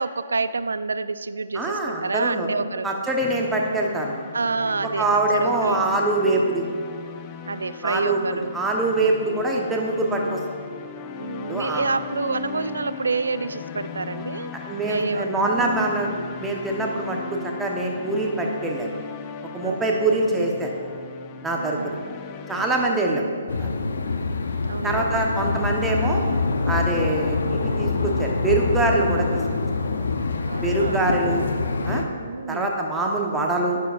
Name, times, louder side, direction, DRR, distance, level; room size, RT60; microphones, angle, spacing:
voice 1, 0.0-2.9 4.3-5.1 5.3-5.9 7.5-8.6 11.2-14.5 14.9-15.7 19.6-20.1 21.5-22.1 22.6-23.1 24.6-25.3 26.9-27.2 30.5-31.6 32.2-32.7, right 4 dB, 80° right, 14 dB, 0.4 m, -29 dB
voice 2, 1.5-2.5 2.8-4.2 4.8-6.6 7.8-10.4 11.4-11.8 14.7-16.1 16.4-17.2 17.4-18.9 19.5-21.0 21.4-22.0 22.5-23.2 23.6-23.7 24.8-26.2 26.7-29.4 30.6-31.4 31.9-32.0 32.5-33.8, right 2 dB, 10° right, 0 dB, 1.1 m, -24 dB
sound 1, 3.2-22.9, left 6 dB, 30° left, 0.6 m, -38 dB
sound 2, 23.5-32.0, left 4 dB, 75° left, 0.7 m, -25 dB
11.5 x 9.4 x 2.5 m, 2.1 s
hypercardioid pair, 135°, 0 cm